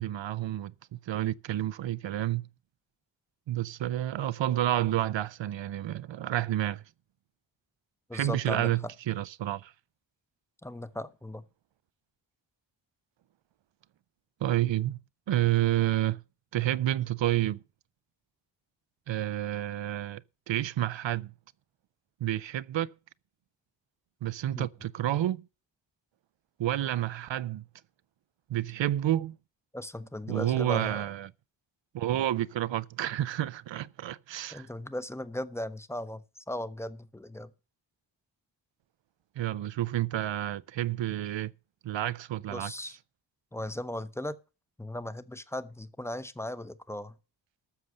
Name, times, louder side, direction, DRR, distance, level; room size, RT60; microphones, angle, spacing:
voice 1, 0.0-2.5 3.5-6.8 8.1-9.7 14.4-15.0 15.3-16.2 16.5-17.6 19.1-20.2 20.5-21.3 22.2-22.9 24.2-25.5 26.6-27.6 28.5-29.4 30.3-31.3 31.9-34.7 39.4-41.5 41.8-42.7, right 13 dB, 75° right, 0.6 m, -29 dB
voice 2, 8.1-8.7 10.6-11.5 24.5-24.7 29.7-31.0 34.5-37.5 42.5-43.0 43.5-44.4 44.8-47.2, left 1 dB, 5° left, 0.7 m, -37 dB
13.0 x 6.8 x 6.4 m
wide cardioid pair, 95°, 45 cm